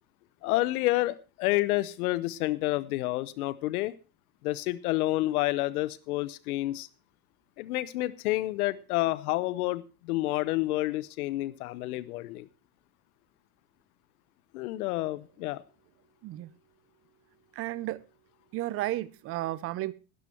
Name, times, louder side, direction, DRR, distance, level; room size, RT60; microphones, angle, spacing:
voice 1, 0.4-3.9 4.4-6.9 7.6-12.5 14.5-15.6, left 18 dB, 85° left, 0.9 m, -29 dB
voice 2, 16.2-16.5 17.5-18.0 18.5-19.9, right 15 dB, 30° right, 0.6 m, -33 dB
13.0 x 11.0 x 4.3 m
supercardioid pair, 145°, 43 cm